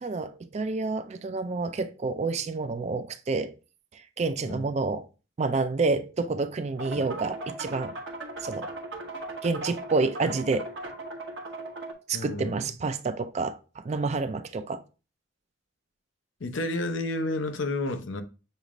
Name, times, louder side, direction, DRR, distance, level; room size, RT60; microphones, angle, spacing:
voice 1, 0.0-3.6 3.9-5.1 5.4-7.9 8.4-8.7 9.4-10.7 12.1-14.8, right 3 dB, 35° right, 0.4 m, -29 dB
sound 1, 6.8-11.9, right 2 dB, 65° right, 0.9 m, -38 dB
voice 2, 12.1-12.6 16.4-18.2, left 2 dB, 85° left, 0.7 m, -30 dB
6.5 x 2.4 x 2.9 m
head